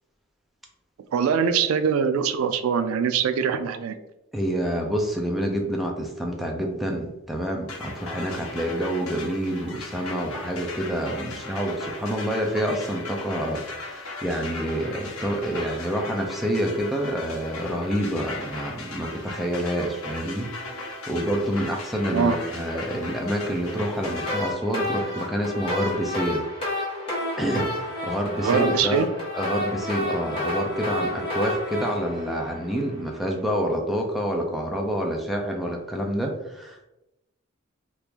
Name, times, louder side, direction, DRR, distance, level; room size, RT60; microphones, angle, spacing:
voice 1, 1.1-3.9 22.1-22.4 28.4-29.1, right 6 dB, 80° right, 9 dB, 0.3 m, -23 dB
voice 2, 4.3-26.4 27.4-29.1 29.3-36.9, equal, ahead, 0 dB, 0.4 m, -28 dB
sound 1, 7.7-24.4, left 3 dB, 90° left, 0.7 m, -37 dB
sound 2, 24.0-33.1, left 1 dB, 25° left, 1.1 m, -30 dB
2.9 x 2.4 x 3.4 m, 0.94 s
head